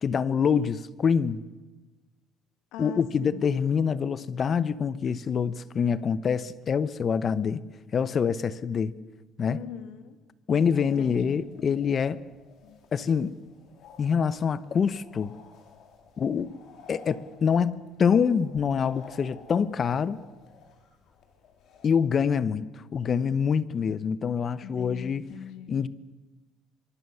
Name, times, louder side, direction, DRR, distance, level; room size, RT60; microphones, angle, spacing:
voice 1, 0.0-1.4 2.8-7.6 7.9-8.9 9.4-9.6 10.5-12.2 12.9-13.4 14.0-15.3 16.2-16.5 16.9-20.2 21.8-25.2 25.7-25.9, left 6 dB, 40° left, 1.0 m, -25 dB
voice 2, 2.7-3.6 9.4-10.2 11.0-11.5 12.6-13.1 24.6-25.8, left 9 dB, 85° left, 2.4 m, -42 dB
sound 1, 10.6-21.9, left 5 dB, 65° left, 4.3 m, -53 dB
24.0 x 23.5 x 7.1 m
cardioid pair, 115°, 0 cm